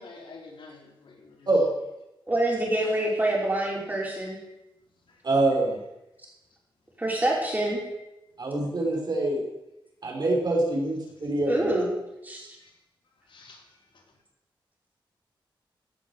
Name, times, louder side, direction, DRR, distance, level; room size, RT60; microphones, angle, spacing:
voice 1, 0.0-1.5 4.2-4.3 5.1-5.2 7.9-8.0 12.6-12.7 13.3-13.7, left 3 dB, 80° left, -2 dB, 4.3 m, -48 dB
voice 2, 2.3-4.4 7.0-7.8 11.5-11.9 12.2-12.4, right 1 dB, 20° right, -3 dB, 5.4 m, -26 dB
voice 3, 5.2-5.8 8.4-9.4 10.0-11.7, right 2 dB, 55° right, -1 dB, 5.6 m, -25 dB
16.0 x 8.2 x 8.1 m, 0.92 s
wide cardioid pair, 110°, 9 cm